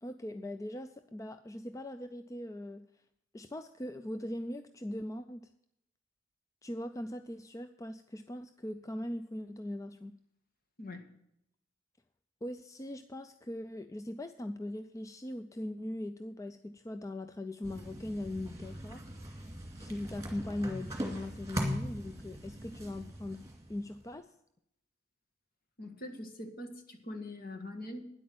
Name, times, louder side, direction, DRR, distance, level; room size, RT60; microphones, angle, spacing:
voice 1, 0.0-2.8 3.3-5.4 6.6-10.1 12.4-19.0 19.8-23.4 23.7-24.3, left 1 dB, 15° left, 9 dB, 0.4 m, -40 dB
sound 1, 17.6-24.1, equal, 15° right, 2.4 m, -40 dB
voice 2, 25.8-28.1, left 1 dB, 50° left, 5 dB, 1.8 m, -43 dB
10.0 x 8.4 x 7.7 m, 0.79 s
head